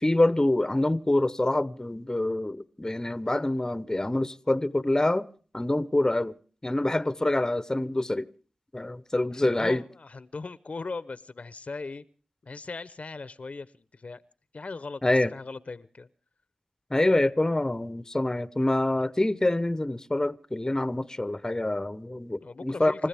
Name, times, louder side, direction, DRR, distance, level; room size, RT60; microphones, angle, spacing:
voice 1, 0.0-5.3 5.5-6.4 6.6-8.3 8.7-9.8 15.0-15.3 16.9-22.9, left 1 dB, 20° left, 0.8 m, -26 dB
voice 2, 9.3-12.0 12.4-14.2 14.5-16.1 22.4-23.1, left 3 dB, 55° left, 0.7 m, -39 dB
28.0 x 14.5 x 3.4 m
cardioid pair, 40°, 3 cm